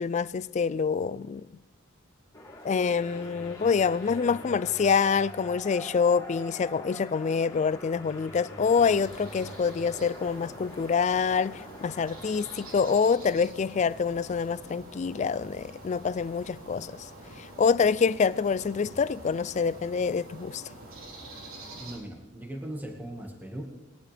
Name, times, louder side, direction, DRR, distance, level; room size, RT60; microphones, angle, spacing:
voice 1, 0.0-1.4 2.6-17.0 17.4-20.6, left 5 dB, 35° left, 0.3 m, -26 dB
sound 1, 2.3-12.9, left 1 dB, 15° left, 2.3 m, -44 dB
sound 2, 8.6-22.0, right 1 dB, 80° right, 3.7 m, -46 dB
voice 2, 21.8-23.6, right 1 dB, 10° right, 1.7 m, -39 dB
21.0 x 11.0 x 3.4 m
head